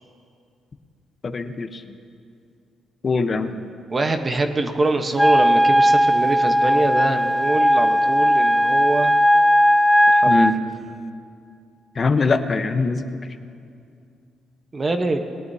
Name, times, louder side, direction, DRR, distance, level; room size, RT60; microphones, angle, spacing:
voice 1, 1.2-1.8 3.0-3.5 10.2-10.5 12.0-13.0, left 4 dB, 40° left, 8 dB, 0.9 m, -22 dB
voice 2, 3.9-9.2 10.1-10.5 14.7-15.2, right 2 dB, 30° right, 6 dB, 1.1 m, -24 dB
Wind instrument woodwind instrument, 5.2-10.5, equal, 5° left, 0.5 m, -17 dB
20.5 x 18.5 x 2.8 m, 2.4 s
cardioid pair, 90°, 0 cm